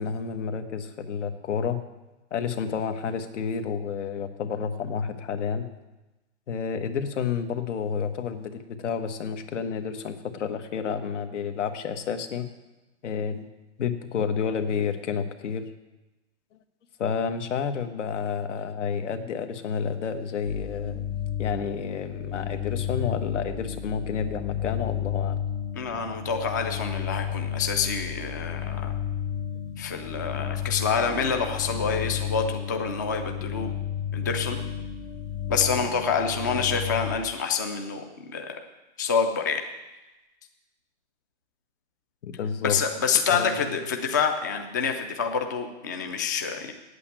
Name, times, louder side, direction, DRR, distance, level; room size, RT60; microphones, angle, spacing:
voice 1, 0.0-1.8 2.3-5.7 6.5-12.5 13.0-13.5 13.8-15.7 17.0-21.1 21.4-25.4 42.2-42.8 43.3-43.8, left 6 dB, 85° left, 8 dB, 1.4 m, -30 dB
sound 1, 20.5-37.2, left 9 dB, 40° left, 1.1 m, -32 dB
voice 2, 25.8-28.9 29.8-33.7 34.1-34.6 35.5-38.6 39.0-39.6 42.6-46.7, left 6 dB, 20° left, 5 dB, 0.3 m, -27 dB
8.6 x 8.4 x 8.9 m, 1.0 s
supercardioid pair, 170°, 35 cm